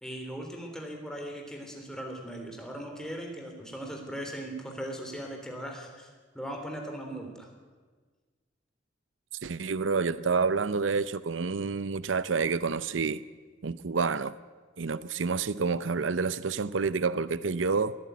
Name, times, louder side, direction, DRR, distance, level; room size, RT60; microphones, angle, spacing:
voice 1, 0.0-7.5, right 1 dB, 5° left, 3.7 m, -39 dB
voice 2, 9.4-13.2 13.6-14.4 14.8-17.9, right 4 dB, 85° right, 0.7 m, -28 dB
23.0 x 14.0 x 9.5 m
head